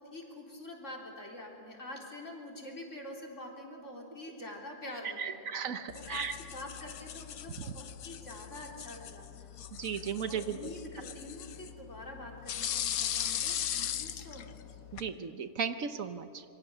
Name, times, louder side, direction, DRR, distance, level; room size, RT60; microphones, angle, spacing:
voice 1, 0.0-5.5 5.9-9.5 10.3-14.8, left 1 dB, 55° left, 0 dB, 3.8 m, -46 dB
voice 2, 5.2-6.3 9.8-10.6 14.9-16.4, right 6 dB, 65° right, 10 dB, 1.3 m, -35 dB
sound 1, 5.9-15.1, left 10 dB, 75° left, 1.3 m, -39 dB
26.0 x 23.5 x 6.8 m, 2.7 s
omnidirectional pair, 1.6 m